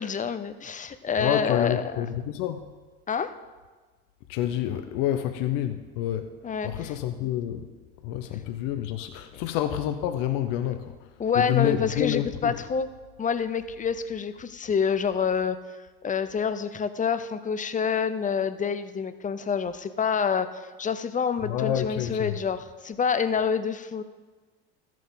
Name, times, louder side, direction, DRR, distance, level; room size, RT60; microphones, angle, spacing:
voice 1, 0.0-2.1 3.1-3.3 6.4-6.9 9.3-9.4 11.2-12.9 13.2-15.6 16.0-24.0, left 6 dB, 20° left, 12 dB, 0.6 m, -27 dB
voice 2, 1.2-2.7 4.3-6.3 6.6-7.7 8.0-10.9 11.4-12.5 21.4-22.4, left 11 dB, 65° left, 8 dB, 0.8 m, -28 dB
13.5 x 7.5 x 4.0 m, 1.3 s
hypercardioid pair, 80°, 36 cm